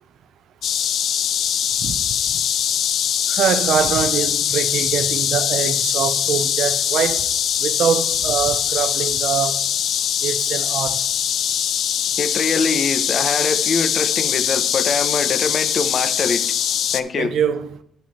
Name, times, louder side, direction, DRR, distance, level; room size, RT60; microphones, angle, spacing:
sound 1, 0.6-17.0, left 9 dB, 70° left, 0.5 m, -22 dB
voice 1, 3.3-7.3 7.6-9.6 10.2-11.0 17.2-17.8, right 8 dB, 75° right, 0.6 m, -23 dB
voice 2, 12.2-16.4 16.9-17.3, left 4 dB, 50° left, 0.9 m, -23 dB
9.6 x 6.0 x 4.2 m
cardioid pair, 90°, 0 cm